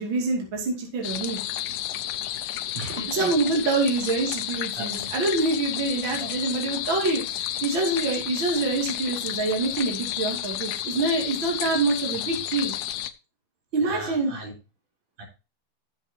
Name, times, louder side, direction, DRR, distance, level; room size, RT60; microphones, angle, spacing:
voice 1, 0.0-1.4 3.1-12.7 13.7-14.3, right 3 dB, 35° right, 0 dB, 2.9 m, -26 dB
sound 1, 1.0-13.1, left 12 dB, 85° left, 1.6 m, -31 dB
voice 2, 2.7-3.6 4.8-5.1 6.2-6.3 12.3-12.4 13.8-14.5 15.2-15.3, right 2 dB, 65° right, -1 dB, 5.1 m, -37 dB
14.5 x 7.3 x 2.8 m, 0.29 s
omnidirectional pair, 4.0 m